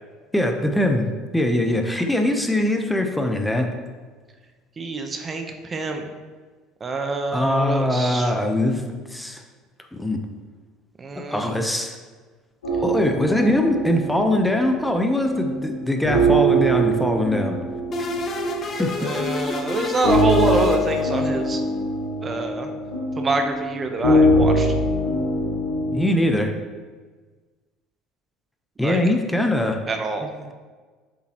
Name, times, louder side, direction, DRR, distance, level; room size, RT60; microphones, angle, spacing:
voice 1, 0.3-1.1 1.3-3.7 7.3-9.4 9.9-10.2 11.1-12.0 12.8-17.6 18.0-18.1 18.8-18.9 25.9-26.5 28.8-29.8 30.4-30.5, left 1 dB, 5° left, 4 dB, 0.9 m, -22 dB
voice 2, 4.8-6.1 6.8-8.3 11.0-11.6 19.0-21.6 22.2-22.7 23.2-24.7 28.8-29.0 29.9-30.3, right 3 dB, 30° right, 5 dB, 0.9 m, -26 dB
sound 1, 12.6-26.0, right 1 dB, 80° left, 2.1 m, -23 dB
sound 2, 17.9-21.5, left 4 dB, 40° left, 1.0 m, -29 dB
7.7 x 7.2 x 3.0 m, 1.4 s
hypercardioid pair, 65°, 0 cm